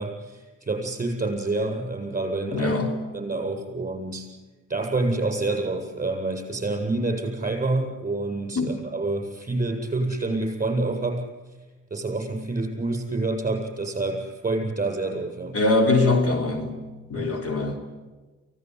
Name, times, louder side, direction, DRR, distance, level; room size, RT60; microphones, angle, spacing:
voice 1, 0.0-2.7 3.1-4.3 4.7-11.3 11.9-15.6 17.2-17.3, right 2 dB, 25° right, 4 dB, 7.9 m, -27 dB
voice 2, 2.5-3.1 8.6-8.7 15.5-16.7 17.1-17.8, left 2 dB, 50° left, 5 dB, 3.8 m, -22 dB
24.0 x 17.5 x 9.9 m, 1.3 s
cardioid pair, 90°, 30 cm